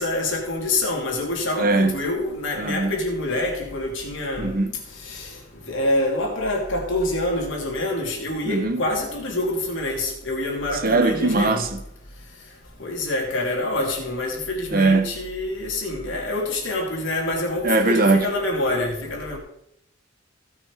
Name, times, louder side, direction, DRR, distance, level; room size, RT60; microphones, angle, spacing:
voice 1, 0.0-4.6 5.0-5.4 5.7-11.7 12.8-19.4, left 2 dB, 70° left, 2.9 m, -26 dB
voice 2, 1.6-2.0 2.6-2.9 4.4-4.7 8.5-8.8 10.8-11.8 14.7-15.1 17.6-18.3, right 3 dB, 45° right, 1.0 m, -20 dB
16.0 x 6.2 x 4.9 m
head